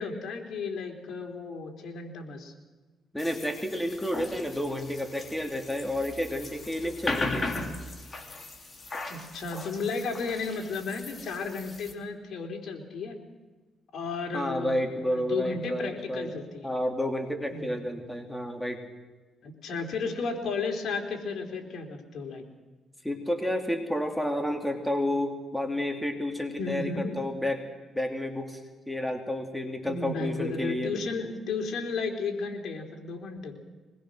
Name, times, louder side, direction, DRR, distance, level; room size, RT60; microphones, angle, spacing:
voice 1, 0.0-2.5 9.1-13.2 13.9-14.8 15.1-16.7 17.5-17.8 19.4-22.4 26.6-27.1 29.9-33.6, left 4 dB, 65° left, 3 dB, 3.8 m, -33 dB
voice 2, 3.1-7.5 14.3-16.3 16.6-18.8 23.0-27.6 27.9-28.6 28.9-30.9, left 1 dB, 5° left, 3 dB, 2.9 m, -30 dB
sound 1, 3.2-11.9, left 2 dB, 30° left, 3.2 m, -37 dB
23.5 x 21.0 x 6.4 m, 1.3 s
cardioid pair, 90°, 0 cm